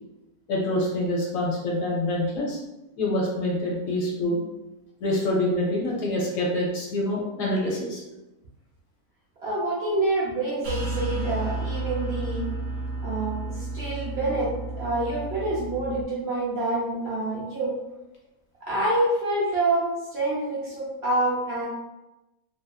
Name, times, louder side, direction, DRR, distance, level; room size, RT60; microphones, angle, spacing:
voice 1, 0.5-2.6 3.0-4.4 5.0-8.0, left 1 dB, 65° left, -3 dB, 0.9 m, -26 dB
voice 2, 9.4-12.5 13.0-14.5 14.8-17.7 18.6-19.8 20.1-21.7, right 2 dB, 55° right, -7 dB, 0.8 m, -27 dB
sound 1, 10.6-16.0, right 2 dB, 80° right, 1.1 m, -32 dB
2.6 x 2.4 x 2.2 m, 0.98 s
omnidirectional pair, 1.6 m